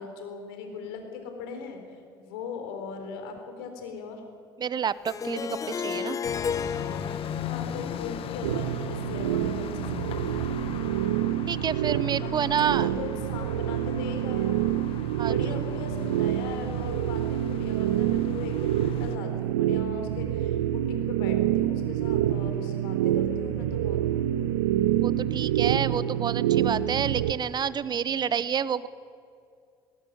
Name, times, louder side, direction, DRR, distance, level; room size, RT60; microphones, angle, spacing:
voice 1, 0.0-4.2 7.5-10.4 12.2-14.6 15.2-24.0, left 5 dB, 70° left, 5 dB, 4.0 m, -39 dB
voice 2, 4.6-6.2 11.5-12.9 15.2-15.5 25.0-28.9, right 8 dB, 35° right, 18 dB, 0.8 m, -29 dB
Harp, 5.0-10.0, left 7 dB, 25° left, 0.6 m, -34 dB
sound 1, 6.2-19.2, left 8 dB, 50° left, 1.5 m, -39 dB
sound 2, 8.4-27.3, right 11 dB, 75° right, 0.9 m, -27 dB
19.0 x 18.5 x 9.7 m, 2.4 s
hypercardioid pair, 65°, 12 cm